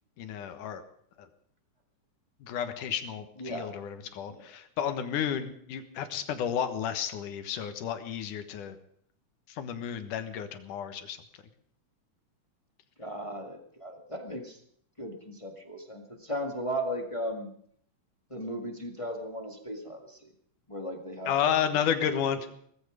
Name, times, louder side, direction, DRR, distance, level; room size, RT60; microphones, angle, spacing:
voice 1, 0.2-0.8 1.2-1.3 2.4-8.8 9.5-11.2 21.3-22.6, left 8 dB, 75° left, 9 dB, 2.9 m, -32 dB
voice 2, 3.4-3.7 4.3-4.5 13.0-14.6 15.0-17.5 18.3-20.2 20.7-21.5 21.8-22.2, equal, 15° left, 4 dB, 1.2 m, -36 dB
18.5 x 15.0 x 5.1 m, 0.63 s
omnidirectional pair, 3.8 m